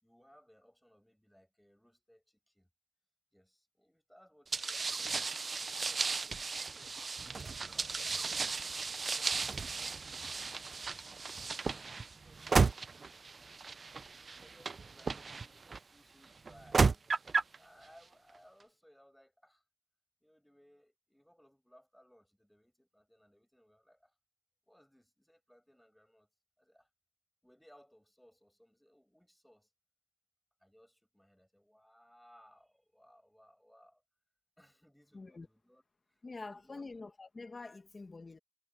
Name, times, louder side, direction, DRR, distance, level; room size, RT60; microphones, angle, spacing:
voice 1, 0.0-2.7 3.3-17.2 17.5-19.6 20.2-24.1 24.7-26.3 26.6-26.9 27.4-29.7 30.6-34.0 34.6-35.8 36.1-37.0, equal, 5° left, 5.8 m, -65 dB
sound 1, 4.5-15.8 16.5-17.6, right 4 dB, 90° right, 0.5 m, -34 dB
voice 2, 35.1-35.5 36.2-38.4, left 3 dB, 70° left, 1.3 m, -46 dB
cardioid pair, 45°, 0 cm